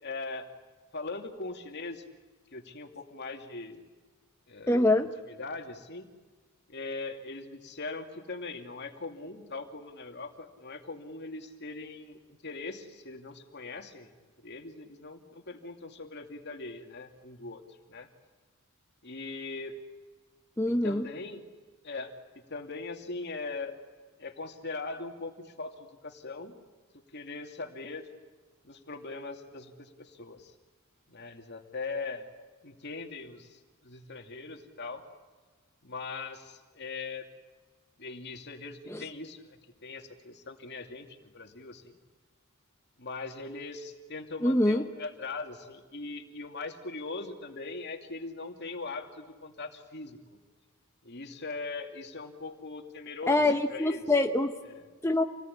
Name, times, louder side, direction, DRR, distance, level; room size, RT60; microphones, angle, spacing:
voice 1, 0.0-0.5 0.9-2.0 2.5-3.8 4.5-4.8 5.3-6.1 6.7-14.1 14.4-17.6 17.9-18.1 19.0-19.8 20.7-21.5 21.8-22.1 22.5-23.8 24.2-26.6 26.9-28.1 28.6-30.5 31.1-32.2 32.6-35.1 35.8-37.3 38.0-42.0 43.0-50.4 51.0-54.0 54.7-54.9, left 3 dB, 55° left, 4 dB, 2.6 m, -40 dB
voice 2, 4.7-5.1 20.6-21.1 38.9-39.0 44.4-44.8 53.3-54.5 55.0-55.2, left 2 dB, 10° left, 4 dB, 0.9 m, -24 dB
28.0 x 19.0 x 10.0 m, 1.4 s
head